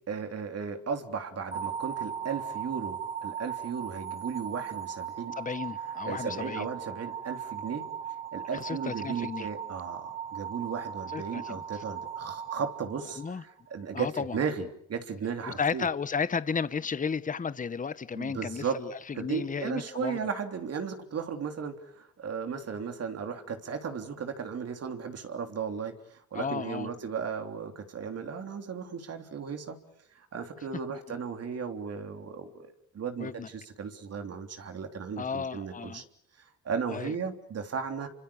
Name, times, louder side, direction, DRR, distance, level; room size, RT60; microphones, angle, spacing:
voice 1, 0.1-5.4 6.1-7.9 8.3-15.9 18.1-18.8 19.1-29.8 30.2-36.0 36.4-38.1, right 6 dB, 55° right, 3.4 m, -35 dB
sound 1, 1.5-13.7, right 8 dB, 30° right, 4.3 m, -38 dB
voice 2, 5.4-6.7 8.5-9.5 11.1-11.8 13.2-13.4 13.9-14.4 15.5-20.2 26.3-26.9 30.9-31.0 33.2-33.5 35.2-36.0 36.9-37.1, left 6 dB, 25° left, 1.0 m, -33 dB
28.5 x 25.5 x 7.0 m
cardioid pair, 90°, 30 cm